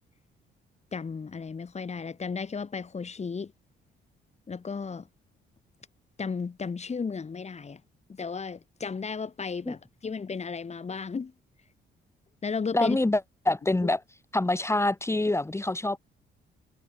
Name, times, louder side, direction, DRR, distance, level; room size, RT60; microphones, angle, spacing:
voice 1, 0.9-3.5 4.5-5.1 6.2-7.8 8.1-11.3 12.4-13.0, left 5 dB, 35° left, 2.8 m, -34 dB
voice 2, 12.7-13.2 13.4-14.0 14.3-16.0, left 2 dB, 15° left, 1.6 m, -25 dB
cardioid pair, 90°, 20 cm